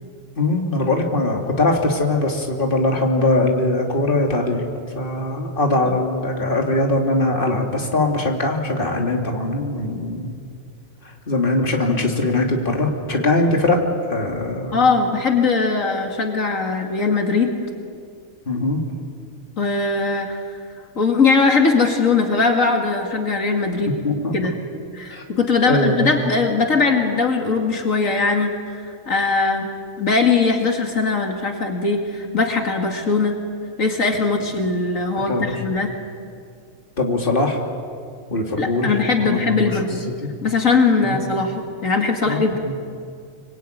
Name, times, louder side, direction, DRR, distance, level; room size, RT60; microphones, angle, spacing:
voice 1, 0.4-4.6 4.9-10.4 11.0-14.8 18.5-18.8 23.8-24.3 25.1-25.2 25.7-26.1 35.3-35.5 37.0-37.6 38.3-38.9 39.2-39.8 40.2-40.3 41.0-41.2 42.2-42.7, left 2 dB, 40° left, 1 dB, 2.9 m, -21 dB
voice 2, 14.7-17.5 19.6-20.4 21.0-23.9 24.3-24.5 24.9-28.5 28.8-29.7 30.0-33.4 33.8-35.9 38.6-40.0 40.4-42.6, left 4 dB, 75° left, 3 dB, 2.7 m, -20 dB
26.0 x 24.0 x 9.3 m, 2.3 s
omnidirectional pair, 1.4 m